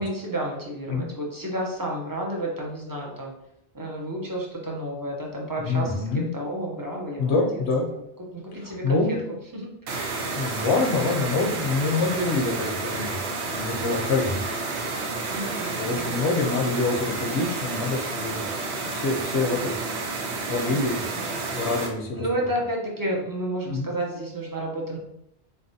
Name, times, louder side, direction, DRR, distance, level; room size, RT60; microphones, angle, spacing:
voice 1, 0.0-3.3 3.7-7.6 8.2-9.7 15.3-16.2 19.5-19.6 20.7-21.3 22.1-25.0, right 1 dB, 20° right, -2 dB, 0.6 m, -31 dB
voice 2, 5.6-6.3 7.2-7.9 8.6-9.2 10.3-13.2 13.5-14.4 15.8-18.4 18.9-19.7 20.5-21.1 21.5-22.3 23.6-23.9, left 3 dB, 75° left, 0 dB, 1.1 m, -26 dB
sound 1, 9.9-21.9, right 3 dB, 75° right, 1.0 m, -30 dB
4.1 x 3.3 x 2.7 m, 0.79 s
omnidirectional pair, 1.2 m